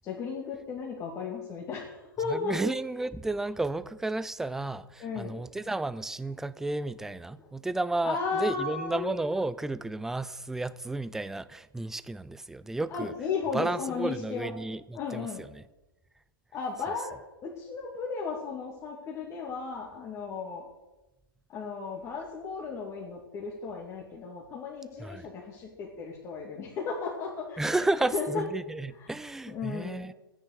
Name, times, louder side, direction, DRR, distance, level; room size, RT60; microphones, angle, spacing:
voice 1, 0.0-2.5 5.0-5.4 7.4-7.5 8.0-9.0 12.9-14.5 14.9-15.4 16.5-17.2 17.4-20.7 21.5-27.8 28.1-28.4 29.0-29.1 29.5-30.1, left 5 dB, 25° left, 2.4 m, -35 dB
voice 2, 2.3-13.1 13.5-15.6 25.0-25.3 27.6-30.1, right 2 dB, 5° right, 0.4 m, -32 dB
13.0 x 9.8 x 6.6 m
hypercardioid pair, 115°, 12 cm